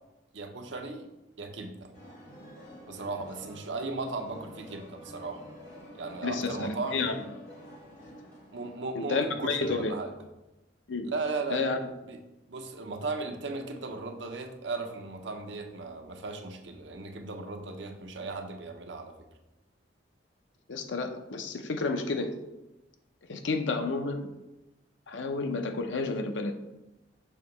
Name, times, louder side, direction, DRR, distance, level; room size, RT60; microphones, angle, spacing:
voice 1, 0.3-1.1 1.4-1.9 2.9-5.4 5.9-7.1 8.5-10.1 11.0-11.6 12.1-12.2 12.5-19.3, right 3 dB, 70° right, 4 dB, 0.8 m, -36 dB
sound 1, 1.9-8.8, equal, 40° left, 1.6 m, -49 dB
voice 2, 6.2-7.2 8.9-9.9 10.9-11.1 11.5-11.9 20.7-22.4 23.3-24.3 25.1-26.5, left 3 dB, 75° left, 6 dB, 0.6 m, -30 dB
6.5 x 2.9 x 5.3 m, 0.99 s
head